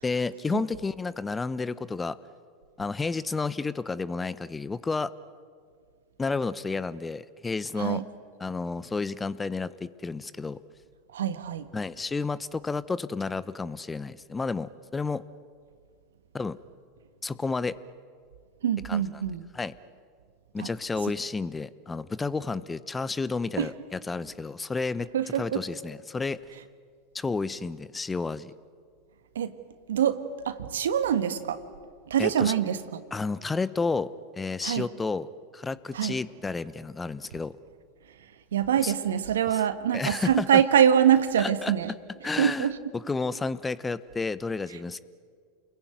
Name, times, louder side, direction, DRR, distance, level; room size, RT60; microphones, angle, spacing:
voice 1, 0.0-2.2 2.8-5.1 6.2-8.0 8.4-10.6 11.7-15.2 16.3-16.6 17.2-17.8 18.9-19.0 19.5-19.7 20.5-25.1 25.4-26.4 27.1-28.5 32.2-32.5 33.1-34.1 34.4-35.3 35.5-37.6 38.8-38.9 39.5-39.6 39.9-40.6 41.4-41.7 42.2-42.7 42.9-45.0, left 4 dB, 15° left, 17 dB, 0.9 m, -31 dB
voice 2, 11.1-11.6 18.6-19.4 20.6-20.7 23.6-23.7 25.1-25.6 29.3-29.5 29.9-31.6 32.1-33.0 34.6-34.9 35.9-36.2 38.5-41.9 42.4-42.8, right 9 dB, 70° right, 12 dB, 1.5 m, -24 dB
29.5 x 21.5 x 9.3 m, 2.1 s
figure-of-eight pair, 90°, 0 cm